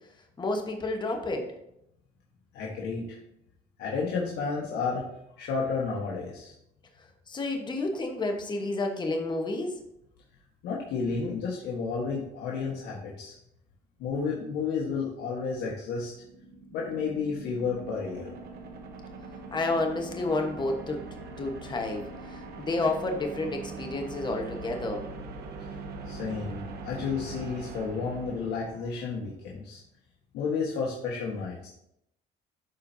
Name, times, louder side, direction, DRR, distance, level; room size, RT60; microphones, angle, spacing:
voice 1, 0.4-1.5 7.3-9.7 19.5-21.0 21.4-25.0, left 2 dB, 25° left, 3 dB, 1.2 m, -30 dB
voice 2, 2.5-3.2 3.8-5.0 5.4-6.5 10.6-13.3 14.0-16.1 16.7-18.3 26.0-29.8 30.3-31.7, left 5 dB, 80° left, -4 dB, 1.4 m, -31 dB
sound 1, 16.2-29.1, right 3 dB, 70° right, 1.0 m, -42 dB
12.0 x 4.5 x 2.7 m, 0.78 s
cardioid pair, 110°, 17 cm